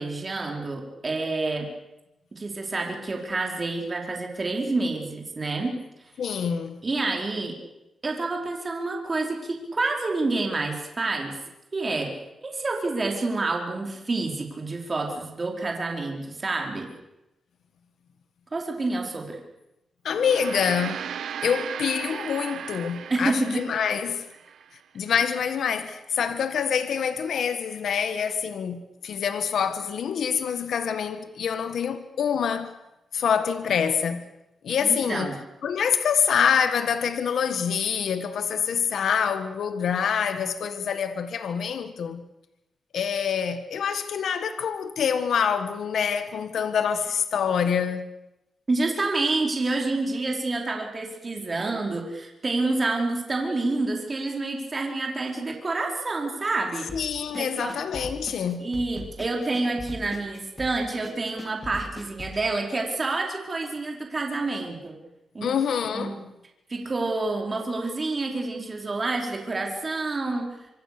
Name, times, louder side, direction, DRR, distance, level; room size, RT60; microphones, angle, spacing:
voice 1, 0.0-1.7 2.3-5.8 6.8-7.6 8.0-11.4 11.7-12.1 12.4-16.9 18.5-19.4 23.1-23.5 34.8-35.4 48.7-56.9 57.3-57.7 58.6-65.0 65.3-65.6 65.9-66.2 66.7-70.5, right 3 dB, 30° right, 4.6 m, -28 dB
voice 2, 6.2-6.8 20.0-21.1 21.4-24.3 24.9-32.7 33.1-34.2 34.6-35.3 35.6-42.2 42.9-48.1 56.9-58.7 65.4-66.2, left 7 dB, 80° left, 1.5 m, -26 dB
Gong, 20.1-24.7, right 8 dB, 85° right, 0.9 m, -36 dB
sound 1, 56.9-62.4, left 1 dB, 20° left, 3.7 m, -40 dB
26.0 x 25.0 x 6.8 m
wide cardioid pair, 115°, 0 cm